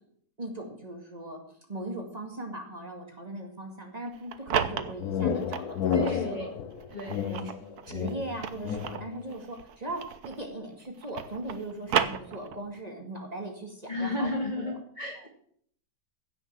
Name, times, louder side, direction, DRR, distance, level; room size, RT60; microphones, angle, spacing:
voice 1, 0.4-6.5 7.0-7.5 7.9-14.8 15.2-15.3, right 1 dB, 25° right, 2 dB, 2.4 m, -39 dB
sound 1, 4.1-6.2 6.8-10.5 10.8-12.8, right 8 dB, 85° right, 1.4 m, -33 dB
sound 2, 4.5-9.2, left 7 dB, 80° left, 1.4 m, -31 dB
voice 2, 5.9-6.5 6.9-7.4 13.9-15.3, left 1 dB, 30° left, -1 dB, 2.3 m, -32 dB
16.0 x 6.5 x 7.7 m, 0.63 s
omnidirectional pair, 1.6 m